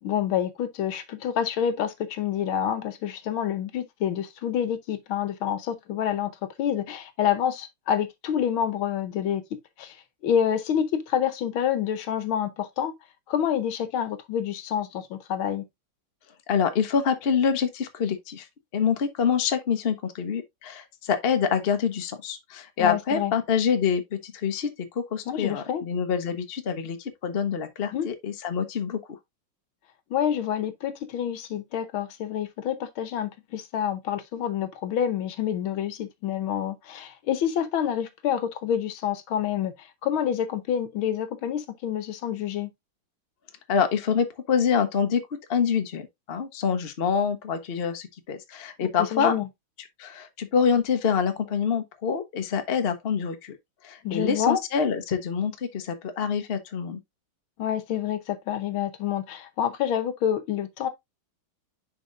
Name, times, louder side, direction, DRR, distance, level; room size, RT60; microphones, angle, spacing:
voice 1, 0.0-6.3 6.6-10.0 10.2-12.9 13.3-15.6 22.8-23.3 25.3-25.8 27.9-28.1 30.1-42.7 48.8-49.5 54.0-54.6 57.6-60.9, left 9 dB, 75° left, 1.6 m, -28 dB
voice 2, 16.5-18.5 18.7-29.0 43.7-45.2 45.5-49.3 50.0-53.6 53.8-57.0, left 6 dB, 45° left, 0.8 m, -26 dB
10.0 x 4.4 x 2.5 m
omnidirectional pair, 2.4 m